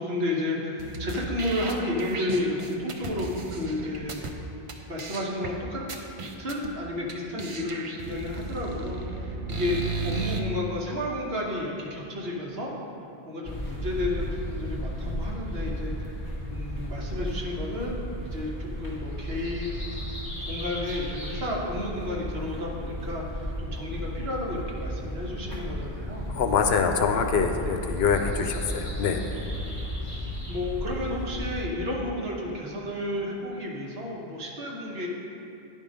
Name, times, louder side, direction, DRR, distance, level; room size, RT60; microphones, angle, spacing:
voice 1, 0.0-4.3 4.9-5.8 6.4-12.7 13.2-16.1 16.5-18.0 18.2-20.0 20.4-26.3 30.1-35.1, left 1 dB, 70° right, -3 dB, 1.4 m, -32 dB
sound 1, 0.8-4.3 4.7-4.8 5.0-5.5 5.9-6.7 7.1-7.2 7.4-10.4, right 4 dB, 40° right, 0.5 m, -34 dB
sound 2, 13.4-31.6, equal, 20° right, 1.6 m, -34 dB
voice 2, 26.3-29.4, left 6 dB, 75° left, 5 dB, 0.9 m, -25 dB
10.5 x 3.8 x 5.2 m, 2.8 s
omnidirectional pair, 1.1 m